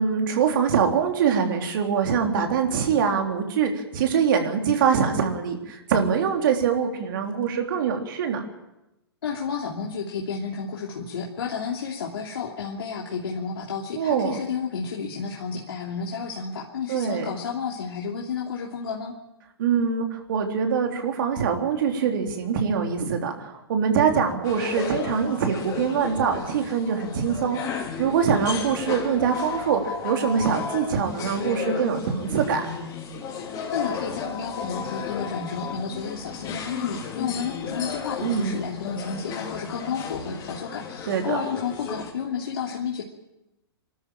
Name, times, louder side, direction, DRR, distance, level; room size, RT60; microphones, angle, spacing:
voice 1, 0.0-8.4 14.0-14.4 16.9-17.3 19.6-32.7 38.2-38.7 41.1-41.4, right 6 dB, 55° right, 3 dB, 3.7 m, -24 dB
voice 2, 9.2-19.1 33.5-43.0, left 6 dB, 65° left, -2 dB, 3.0 m, -31 dB
sound 1, 24.4-42.1, left 6 dB, 30° left, 4.2 m, -34 dB
25.0 x 13.0 x 9.0 m, 0.93 s
hypercardioid pair, 120°, 13 cm